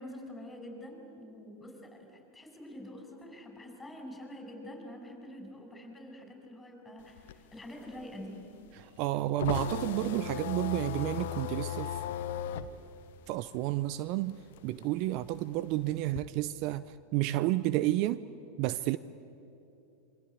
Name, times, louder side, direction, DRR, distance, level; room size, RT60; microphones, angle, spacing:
voice 1, 0.0-8.4, left 1 dB, 10° left, 6.1 m, -46 dB
sound 1, 7.0-14.1 14.4-16.2, left 10 dB, 65° left, 1.1 m, -37 dB
voice 2, 8.8-12.0 13.3-18.2 18.6-19.0, right 15 dB, 50° right, 0.6 m, -31 dB
27.0 x 24.0 x 8.4 m
hypercardioid pair, 90°, 0 cm